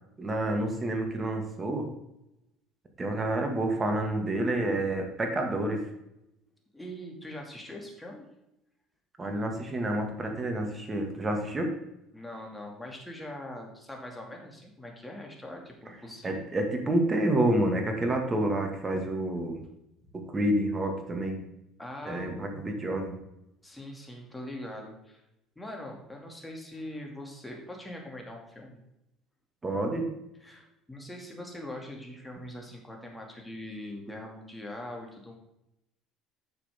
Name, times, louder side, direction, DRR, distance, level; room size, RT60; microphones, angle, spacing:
voice 1, 0.2-1.9 3.0-5.8 9.2-11.7 16.2-19.6 20.1-21.4 22.0-23.2 29.6-30.1, right 1 dB, 25° right, 3 dB, 2.2 m, -29 dB
voice 2, 6.7-8.3 12.1-16.5 21.8-22.8 23.6-25.2 25.6-28.8 30.4-35.4, left 1 dB, 10° left, 0 dB, 2.6 m, -42 dB
9.1 x 6.7 x 3.8 m, 0.86 s
hypercardioid pair, 80°, 0 cm